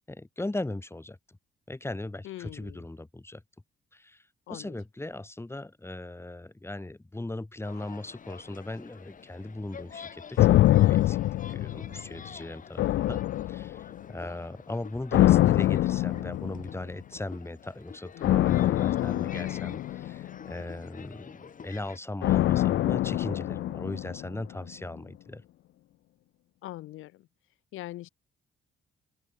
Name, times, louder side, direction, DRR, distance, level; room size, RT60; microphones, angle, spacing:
voice 1, 0.1-1.4 1.7-3.4 3.9-11.2 11.5-13.2 13.5-25.4, left 2 dB, 10° left, 6.4 m, -38 dB
voice 2, 2.2-2.8 4.5-4.7 18.1-18.4 26.6-27.3 27.7-28.1, left 16 dB, 85° left, 1.5 m, -42 dB
sound 1, 7.6-22.0, left 6 dB, 40° left, 2.2 m, -48 dB
sound 2, 10.4-12.3 12.8-14.0 15.1-16.8 18.2-20.6 22.2-24.4 24.7-24.8, left 15 dB, 70° left, 0.5 m, -24 dB
open air
cardioid pair, 90°, 20 cm